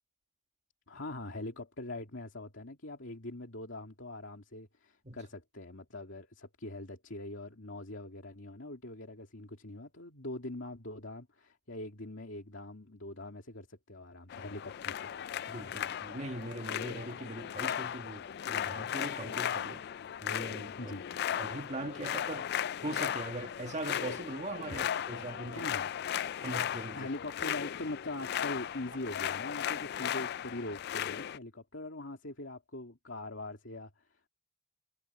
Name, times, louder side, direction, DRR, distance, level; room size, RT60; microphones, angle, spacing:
voice 1, 0.9-15.1 20.8-21.1 24.7-24.8 25.5-25.9 26.9-34.3, left 2 dB, 70° left, 2.6 m, -42 dB
sound 1, 14.3-31.4, left 9 dB, 55° left, 0.3 m, -36 dB
voice 2, 15.5-19.8 20.2-20.9 21.4-22.5 22.8-25.6 26.4-27.0, right 2 dB, 35° right, 1.8 m, -41 dB
head